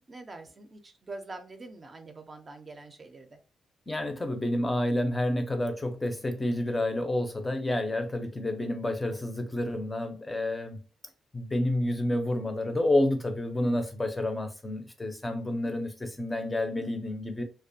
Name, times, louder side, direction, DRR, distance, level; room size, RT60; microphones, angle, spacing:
voice 1, 0.1-3.4, right 2 dB, 35° right, 0.5 m, -44 dB
voice 2, 3.9-10.8 11.3-17.4, left 1 dB, 20° left, 0.5 m, -29 dB
2.4 x 2.2 x 2.6 m
cardioid pair, 80°, 0 cm